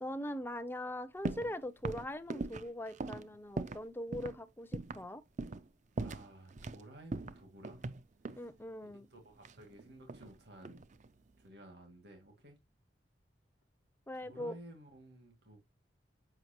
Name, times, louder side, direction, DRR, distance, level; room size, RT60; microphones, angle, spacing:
voice 1, 0.0-5.2 8.4-9.1 14.1-14.6, left 1 dB, 10° left, 0.6 m, -41 dB
sound 1, 1.2-1.5 1.8-3.9 4.1-4.4 4.7-5.1 5.4-5.7 6.0-6.8 7.1-8.5 9.4-10.3 10.6-11.1, right 3 dB, 45° right, 0.5 m, -40 dB
voice 2, 6.0-7.9 8.2-8.5 9.1-10.8 11.4-12.6 14.1-15.6, right 1 dB, 65° right, 2.2 m, -54 dB
7.9 x 5.8 x 2.9 m
head